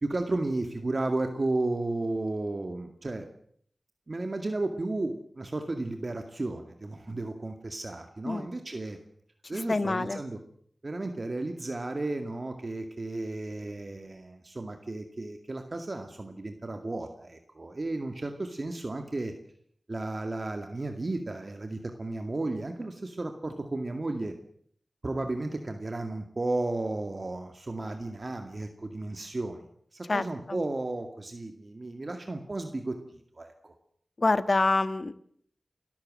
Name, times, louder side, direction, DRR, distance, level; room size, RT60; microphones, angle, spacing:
voice 1, 0.0-3.3 4.1-9.0 9.5-10.4 10.8-19.3 19.9-24.3 25.0-33.7, right 2 dB, 50° right, 6 dB, 2.2 m, -33 dB
voice 2, 9.7-10.2 30.1-30.6 34.2-35.1, left 3 dB, 55° left, 14 dB, 1.3 m, -26 dB
29.5 x 13.5 x 7.7 m, 0.63 s
cardioid pair, 50°, 0 cm